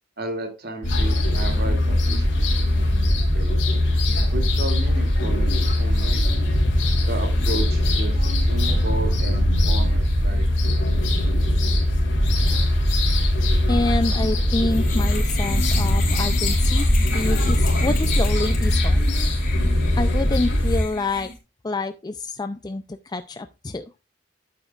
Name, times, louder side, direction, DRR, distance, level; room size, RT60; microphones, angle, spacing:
voice 1, 0.2-2.9 3.2-3.6 4.3-6.2 7.1-11.0, right 2 dB, 55° right, 3 dB, 2.6 m, -33 dB
sound 1, 0.8-20.8, left 1 dB, 75° left, 3.2 m, -21 dB
sound 2, 7.9-10.7, right 2 dB, 40° right, 0.5 m, -30 dB
voice 2, 13.7-19.0 20.0-21.3 21.6-23.9, left 2 dB, 20° left, 9 dB, 0.5 m, -27 dB
sound 3, 14.7-21.4, left 1 dB, 50° left, 4.1 m, -28 dB
10.5 x 8.9 x 2.4 m, 0.27 s
head